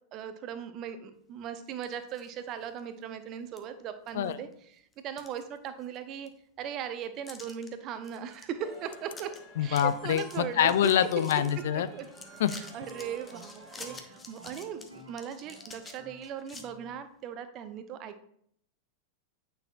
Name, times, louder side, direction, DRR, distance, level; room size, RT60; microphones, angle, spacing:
voice 1, 0.1-6.3 6.6-9.3 9.6-11.0 11.7-12.1 12.5-18.2, right 8 dB, 35° right, 10 dB, 0.7 m, -39 dB
sound 1, 1.7-2.3 2.8-2.9 3.6-3.7 4.1-4.5 4.9-6.0 6.3-6.4 7.3-7.7 8.0-8.5 8.7-8.8 9.1-9.4 9.7-11.5 12.0-16.6, left 4 dB, 15° left, 0.9 m, -48 dB
sound 2, 8.6-14.0, right 3 dB, 5° right, 2.0 m, -50 dB
voice 2, 9.6-10.2 10.6-11.9 12.4-12.5, left 10 dB, 55° left, 14 dB, 0.4 m, -25 dB
Piano, 9.6-17.0, equal, 75° right, 1.5 m, -53 dB
8.9 x 5.6 x 2.4 m, 0.66 s
figure-of-eight pair, 90°, 0 cm